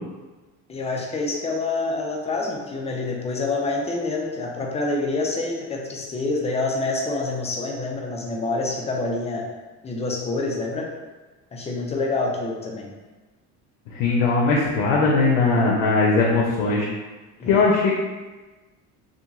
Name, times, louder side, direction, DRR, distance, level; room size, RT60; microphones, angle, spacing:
voice 1, 0.7-9.5 9.8-10.9 11.5-12.9 17.4-17.7, left 3 dB, 15° left, 0 dB, 0.4 m, -27 dB
voice 2, 13.9-16.9 17.4-17.9, left 3 dB, 70° left, -3 dB, 0.7 m, -19 dB
2.8 x 2.5 x 2.3 m, 1.2 s
hypercardioid pair, 75°, 46 cm